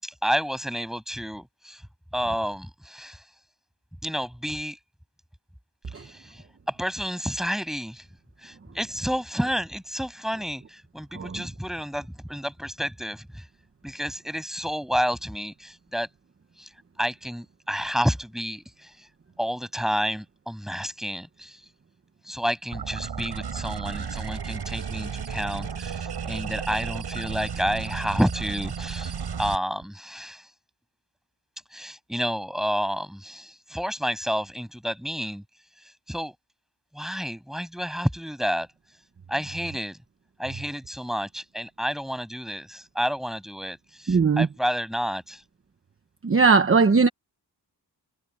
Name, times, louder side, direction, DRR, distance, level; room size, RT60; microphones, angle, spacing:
voice 1, 0.0-1.8 2.1-3.2 4.0-4.8 5.9-8.0 8.4-13.4 13.8-16.1 16.6-16.7 17.0-19.1 19.4-21.6 22.3-30.5 31.7-35.4 36.1-36.3 36.9-38.7 39.3-40.0 40.4-45.4, equal, ahead, 7.6 m, -30 dB
sound 1, 22.7-29.6, right 7 dB, 80° right, 6.9 m, -33 dB
voice 2, 44.1-44.5 46.2-47.1, right 4 dB, 35° right, 1.1 m, -19 dB
wide cardioid pair, 160°, 39 cm